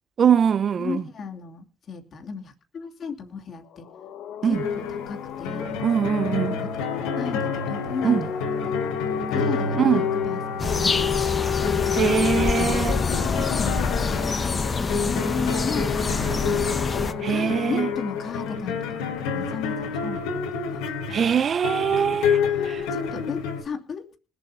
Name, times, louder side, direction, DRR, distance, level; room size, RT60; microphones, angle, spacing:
voice 1, 0.2-1.0 4.4-4.6 5.8-6.6 8.0-8.3 9.8-10.0 11.9-13.0 17.2-17.9 21.1-22.4 22.6-22.8, right 7 dB, 50° right, 0.7 m, -22 dB
voice 2, 0.8-3.9 4.4-5.7 6.6-6.7 7.1-8.3 8.8-9.8 10.3-10.4 10.7-11.6 12.5-14.2 14.9-16.9 17.3-20.4 20.7-20.8 22.0-22.3 22.9-24.2, left 6 dB, 50° left, 2.8 m, -35 dB
sound 1, 3.7-18.5, left 9 dB, 70° left, 1.3 m, -32 dB
sound 2, 4.5-23.6, left 5 dB, 85° left, 3.1 m, -29 dB
sound 3, 10.6-17.1, left 4 dB, 30° left, 1.2 m, -26 dB
20.0 x 7.8 x 5.6 m
supercardioid pair, 75°, 0 cm